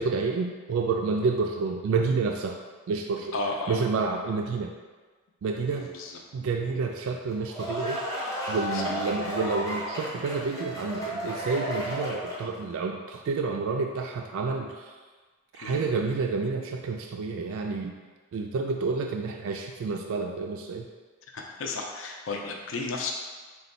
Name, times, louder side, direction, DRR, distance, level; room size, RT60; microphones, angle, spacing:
voice 1, 0.0-2.6 2.9-3.3 3.7-4.7 5.4-5.9 6.3-8.0 8.5-14.9 15.5-17.9 18.3-20.9, right 4 dB, 75° right, 3 dB, 0.3 m, -29 dB
voice 2, 3.3-3.8 5.7-6.2 8.7-8.9 15.6-15.8 21.3-23.1, left 3 dB, 70° left, 1 dB, 0.5 m, -33 dB
sound 1, 7.3-12.6, equal, 15° left, 0.7 m, -33 dB
4.2 x 2.2 x 4.0 m, 1.4 s
head